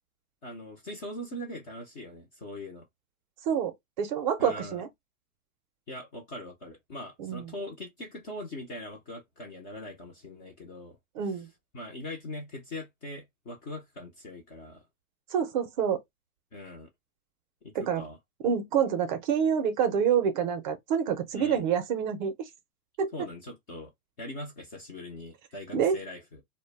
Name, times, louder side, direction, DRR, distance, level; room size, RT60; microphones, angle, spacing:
voice 1, 0.4-2.9 4.4-4.8 5.9-11.0 11.7-14.8 16.5-16.9 17.6-18.2 21.3-21.6 23.1-23.9 24.2-26.4, left 1 dB, 25° left, 0.4 m, -41 dB
voice 2, 3.5-4.9 7.2-7.5 11.2-11.5 15.3-16.0 17.8-18.0 18.4-22.5 23.0-23.1 25.7-26.0, right 7 dB, 35° right, 0.5 m, -27 dB
2.2 x 2.0 x 3.1 m
hypercardioid pair, 135°, 44 cm